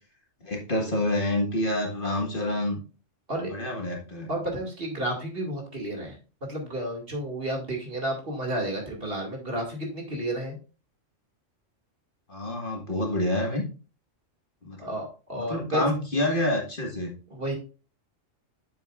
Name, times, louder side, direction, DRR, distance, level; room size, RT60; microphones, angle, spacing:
voice 1, 0.4-2.8 3.4-4.3 12.3-13.6 14.6-14.8 15.4-17.1, left 1 dB, 40° left, 1 dB, 1.8 m, -27 dB
voice 2, 4.3-10.6 14.8-15.8 17.3-17.6, right 1 dB, 45° right, 0 dB, 2.5 m, -31 dB
8.9 x 7.2 x 2.5 m, 0.33 s
omnidirectional pair, 1.3 m